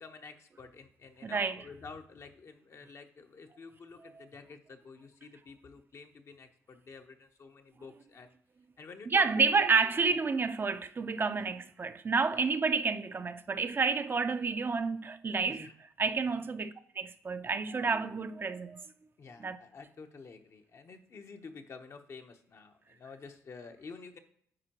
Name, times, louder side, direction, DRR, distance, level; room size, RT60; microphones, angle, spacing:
voice 1, 0.0-8.4 8.8-10.2 11.3-11.5 12.3-12.5 13.7-13.8 15.5-15.7 16.3-16.4 19.2-24.2, left 4 dB, 55° left, 0.9 m, -50 dB
voice 2, 1.2-1.6 9.1-15.7 16.0-18.9 19.4-19.6, right 4 dB, 40° right, 0.5 m, -30 dB
9.9 x 4.4 x 2.9 m
cardioid pair, 65°, 6 cm